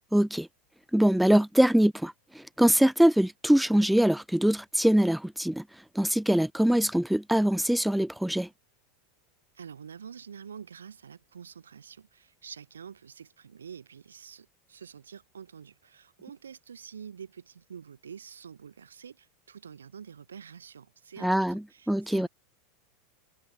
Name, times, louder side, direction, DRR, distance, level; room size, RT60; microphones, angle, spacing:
voice 1, 0.1-0.5 0.9-5.6 6.0-8.5 21.2-22.3, right 1 dB, ahead, 0.4 m, -23 dB
voice 2, 9.5-22.3, right 7 dB, 80° right, 3.5 m, -47 dB
figure-of-eight pair, 85°, 0 cm